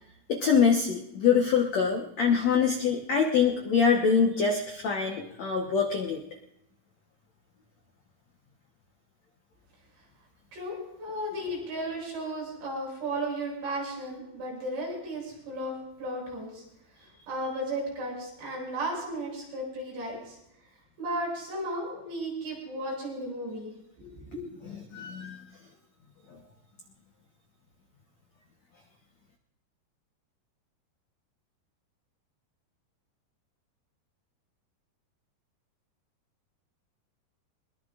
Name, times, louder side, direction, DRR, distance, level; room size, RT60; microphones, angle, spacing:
voice 1, 0.3-6.2 24.9-25.4 26.3-26.4, left 6 dB, 75° left, 2 dB, 1.6 m, -24 dB
voice 2, 10.5-16.6 17.0-20.4 21.0-23.7 24.0-24.4, right 1 dB, 85° right, -3 dB, 9.9 m, -34 dB
22.5 x 21.5 x 2.5 m, 0.79 s
omnidirectional pair, 4.9 m